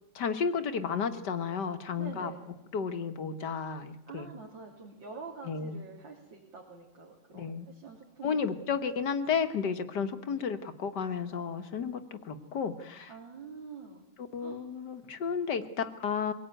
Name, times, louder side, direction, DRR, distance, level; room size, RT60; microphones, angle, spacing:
voice 1, 0.2-2.3 2.7-4.3 5.5-5.8 7.3-7.7 8.2-13.1 14.3-16.3, left 6 dB, 65° left, 10 dB, 1.8 m, -32 dB
voice 2, 2.0-2.4 4.1-8.5 13.1-14.0 14.4-14.6, right 4 dB, 75° right, -2 dB, 4.0 m, -46 dB
24.0 x 17.5 x 9.1 m, 0.93 s
omnidirectional pair, 2.1 m